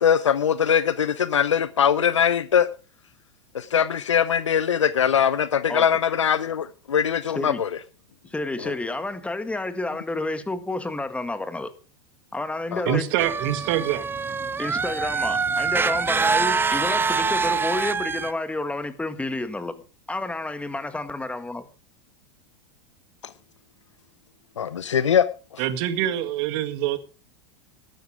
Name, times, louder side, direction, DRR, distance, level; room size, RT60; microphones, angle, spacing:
voice 1, 0.0-2.7 3.5-7.7 8.6-8.7 12.7-13.0 24.6-25.3, left 8 dB, 90° left, 0.7 m, -21 dB
voice 2, 8.2-11.7 12.3-13.1 14.6-19.8 20.1-21.7, left 2 dB, 10° left, 1.7 m, -30 dB
voice 3, 12.9-14.1 25.6-27.0, right 12 dB, 55° right, 2.0 m, -25 dB
sound 1, 13.2-18.3, right 5 dB, 15° right, 0.6 m, -24 dB
13.5 x 12.0 x 4.9 m
hypercardioid pair, 95°, 15 cm